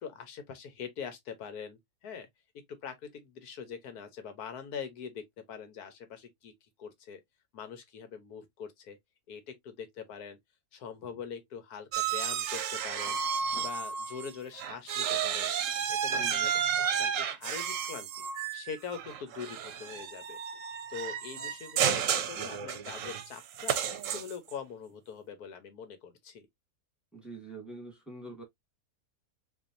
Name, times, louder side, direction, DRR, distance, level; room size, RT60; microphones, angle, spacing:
voice 1, 0.0-2.3 2.5-6.5 6.8-7.2 7.5-9.0 9.3-10.4 10.7-13.2 13.5-15.5 15.9-16.5 16.8-20.4 20.9-23.8 24.1-26.4, left 7 dB, 90° left, 1.5 m, -43 dB
sound 1, 11.9-14.3 14.6-24.5, right 8 dB, 65° right, 0.9 m, -32 dB
voice 2, 16.2-16.5 27.1-28.4, right 2 dB, ahead, 1.4 m, -45 dB
4.5 x 2.9 x 2.6 m
omnidirectional pair, 1.6 m